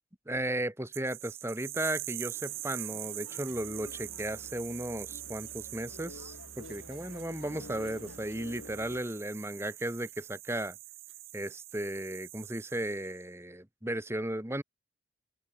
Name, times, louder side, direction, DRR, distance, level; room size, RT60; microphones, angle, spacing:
voice 1, 0.2-10.8 11.3-14.6, right 1 dB, 15° right, 1.5 m, -35 dB
sound 1, 0.9-13.2, right 18 dB, 75° right, 0.7 m, -44 dB
sound 2, 2.3-9.0, left 2 dB, 90° left, 3.2 m, -51 dB
Musical instrument, 3.5-9.1, right 1 dB, 55° right, 2.8 m, -55 dB
open air
head